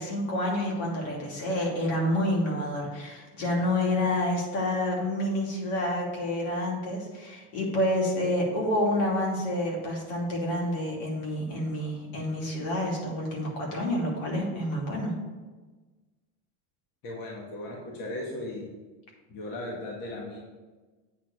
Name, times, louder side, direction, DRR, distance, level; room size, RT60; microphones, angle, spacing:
voice 1, 0.0-15.1, left 1 dB, 80° left, -2 dB, 3.0 m, -28 dB
voice 2, 17.0-18.7 19.3-20.4, left 1 dB, 50° left, -2 dB, 2.0 m, -37 dB
8.6 x 4.1 x 7.0 m, 1.3 s
supercardioid pair, 115°, 43 cm